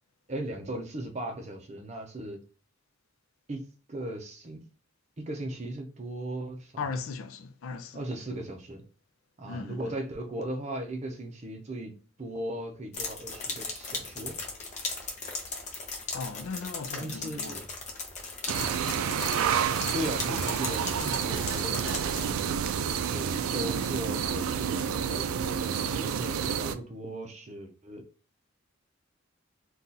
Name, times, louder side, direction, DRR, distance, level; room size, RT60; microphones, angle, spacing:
voice 1, 0.3-2.4 3.5-4.6 5.2-6.8 7.9-8.8 9.4-14.4 17.0-17.6 19.9-22.5 23.0-28.0, right 1 dB, 35° right, 0.5 m, -37 dB
voice 2, 6.8-8.0 9.5-9.9 16.1-17.6, left 4 dB, 75° left, 0.4 m, -37 dB
sound 1, 12.9-22.3, left 3 dB, 35° left, 0.7 m, -37 dB
sound 2, 18.5-26.7, right 7 dB, 85° right, 0.3 m, -29 dB
2.7 x 2.3 x 3.8 m
head